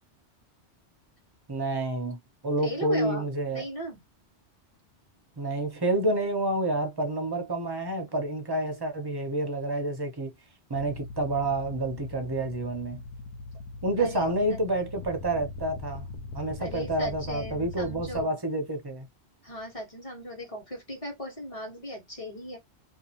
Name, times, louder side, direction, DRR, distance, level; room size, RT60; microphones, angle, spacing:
voice 1, 1.5-3.7 5.4-10.3 10.7-13.0 13.8-16.1 16.3-19.1, right 1 dB, 30° right, 0.5 m, -29 dB
voice 2, 2.6-4.0 14.0-14.6 16.6-18.4 19.4-22.6, equal, 30° left, 1.2 m, -38 dB
sound 1, 10.7-18.2, left 3 dB, 85° left, 1.0 m, -41 dB
2.6 x 2.5 x 2.8 m
omnidirectional pair, 1.2 m